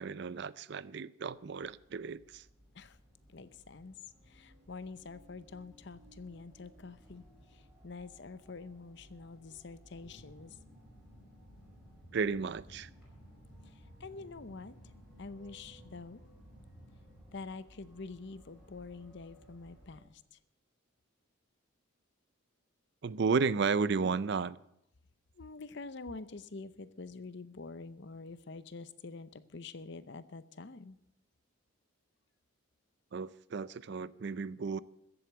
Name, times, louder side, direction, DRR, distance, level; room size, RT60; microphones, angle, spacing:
voice 1, 0.0-2.4 12.1-12.9 23.0-24.6 33.1-34.8, right 5 dB, 55° right, 0.4 m, -33 dB
sound 1, 1.2-20.0, equal, 5° right, 5.3 m, -61 dB
voice 2, 3.3-4.0 4.3-7.2 7.5-10.6 13.7-14.7 15.2-16.2 17.3-20.2 25.4-31.0, left 3 dB, 55° left, 0.7 m, -46 dB
sound 2, 9.9-17.3, equal, 35° right, 4.1 m, -57 dB
14.5 x 8.0 x 7.8 m
head